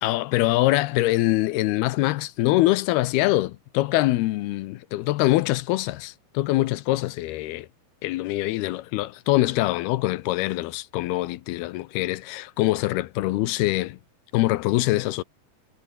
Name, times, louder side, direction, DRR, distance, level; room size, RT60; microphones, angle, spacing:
voice 1, 0.0-7.7 8.0-14.0 14.3-15.2, left 17 dB, 80° left, 2.7 m, -24 dB
omnidirectional pair, 4.5 m